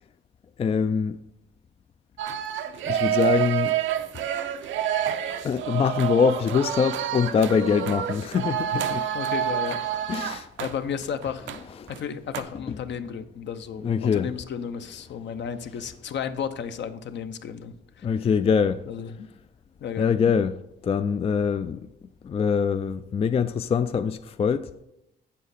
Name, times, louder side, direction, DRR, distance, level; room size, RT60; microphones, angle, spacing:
voice 1, 0.6-1.2 2.8-3.8 5.4-9.1 10.1-10.5 11.8-11.9 12.7-12.8 13.8-14.3 18.0-18.8 20.0-21.8 22.2-24.7, left 6 dB, 30° left, 0.3 m, -24 dB
sound 1, 2.2-11.6 11.9-12.0 12.3-12.4, right 10 dB, 75° right, 0.6 m, -28 dB
voice 2, 9.1-9.8 10.6-11.5 12.0-18.1 18.9-19.3 19.8-20.2, left 7 dB, 65° left, 0.7 m, -33 dB
7.9 x 7.4 x 4.2 m
cardioid pair, 90°, 20 cm